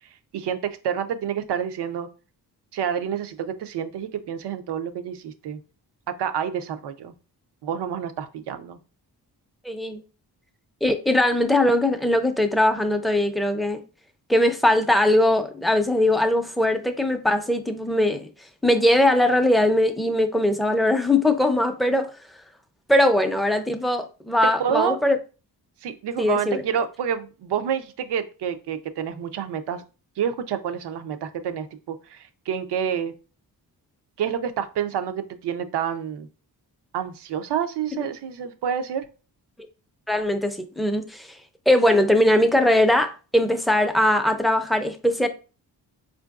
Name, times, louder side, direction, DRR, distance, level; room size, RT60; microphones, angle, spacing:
voice 1, 0.3-2.1 2.7-5.6 6.2-7.1 7.6-8.8 24.6-25.0 25.8-29.8 30.2-33.1 34.2-36.3 36.9-39.1, right 8 dB, 90° right, 0.5 m, -28 dB
voice 2, 9.6-10.0 10.8-13.8 14.3-18.3 18.6-22.1 22.9-25.2 26.2-26.6 40.1-41.4 41.7-45.3, left 1 dB, ahead, 0.4 m, -20 dB
4.4 x 2.6 x 2.3 m
cardioid pair, 85°, 39 cm